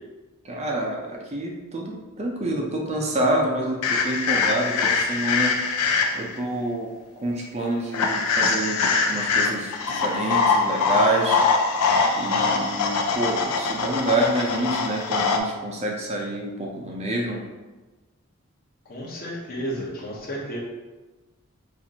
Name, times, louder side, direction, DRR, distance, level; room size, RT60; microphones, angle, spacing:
voice 1, 0.4-5.5 6.1-6.9 7.2-11.4 12.1-17.4, right 1 dB, 30° right, 0 dB, 0.5 m, -27 dB
sound 1, 3.8-6.4 7.9-15.4, left 4 dB, 80° left, 0.4 m, -23 dB
voice 2, 18.9-20.6, equal, 40° left, -3 dB, 0.8 m, -32 dB
4.2 x 2.5 x 2.8 m, 1.2 s
head